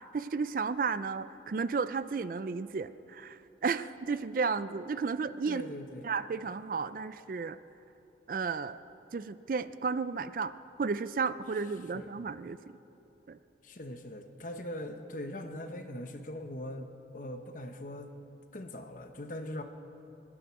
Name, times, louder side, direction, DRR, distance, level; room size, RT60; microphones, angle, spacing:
voice 1, 0.0-5.6 6.0-7.6 8.3-8.8 9.1-10.5 10.8-12.6 13.3-13.4, right 5 dB, 50° right, 14 dB, 0.4 m, -33 dB
voice 2, 5.5-6.0 11.9-12.1 13.6-18.1 18.5-19.6, left 1 dB, 45° left, 6 dB, 1.0 m, -41 dB
22.5 x 10.0 x 6.2 m, 2.9 s
head